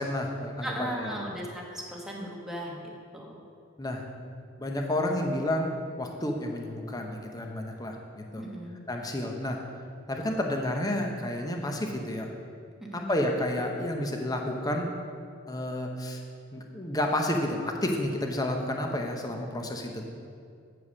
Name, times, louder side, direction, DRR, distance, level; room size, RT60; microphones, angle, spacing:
voice 1, 0.0-1.3 3.8-4.1 4.6-5.7 6.0-8.4 8.9-9.6 10.1-12.3 12.9-14.9 15.5-16.2 16.5-20.1, left 1 dB, 20° left, 2 dB, 0.7 m, -30 dB
voice 2, 0.6-2.7 3.1-3.4 8.4-8.8 12.8-13.3, equal, ahead, -3 dB, 1.1 m, -37 dB
8.5 x 4.7 x 6.1 m, 2.3 s
head